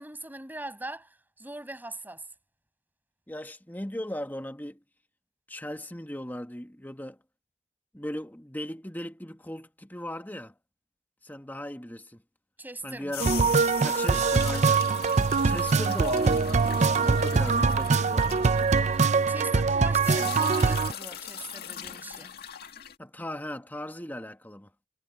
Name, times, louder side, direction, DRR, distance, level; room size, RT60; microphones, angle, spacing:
voice 1, 0.0-2.2 12.6-13.2 19.3-22.3, right 2 dB, 10° right, 7.2 m, -41 dB
voice 2, 3.3-4.8 5.5-7.2 7.9-10.5 11.2-12.2 12.8-13.4 13.8-14.8 15.3-18.5 23.0-24.7, left 1 dB, 10° left, 1.7 m, -38 dB
sound 1, 12.9-19.6 19.9-23.0, left 9 dB, 60° left, 2.0 m, -40 dB
sound 2, 13.2-20.9, right 4 dB, 40° right, 0.5 m, -23 dB
head